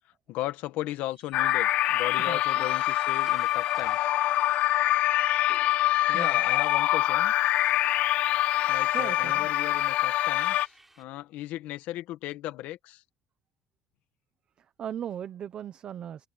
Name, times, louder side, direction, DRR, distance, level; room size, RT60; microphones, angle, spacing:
voice 1, 0.3-4.1 6.1-7.3 8.7-13.0, left 15 dB, 75° left, 1.7 m, -36 dB
sound 1, 1.1-11.0, right 2 dB, 10° right, 4.3 m, -55 dB
sound 2, 1.3-10.7, left 15 dB, 60° left, 0.3 m, -25 dB
voice 2, 2.2-2.7 4.1-4.2 6.1-6.4 7.9-8.0 8.9-9.5 14.6-16.3, right 9 dB, 45° right, 1.0 m, -38 dB
cardioid pair, 140°, 3 cm